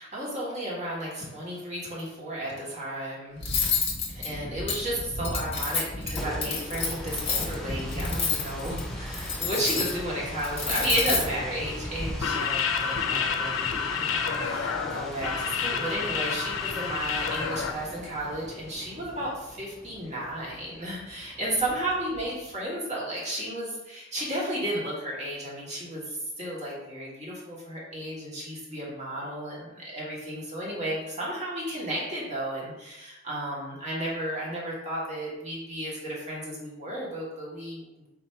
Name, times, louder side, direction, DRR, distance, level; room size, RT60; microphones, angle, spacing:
voice 1, 0.0-3.4 4.1-38.1, right 1 dB, 35° right, -6 dB, 1.4 m, -33 dB
Cutlery silverware, 3.4-12.1, left 4 dB, 30° left, 0.8 m, -30 dB
sound 1, 5.9-22.6, equal, ahead, 0.5 m, -41 dB
sound 2, 12.1-17.7, left 6 dB, 85° left, 0.4 m, -29 dB
4.0 x 2.7 x 4.5 m, 0.96 s
head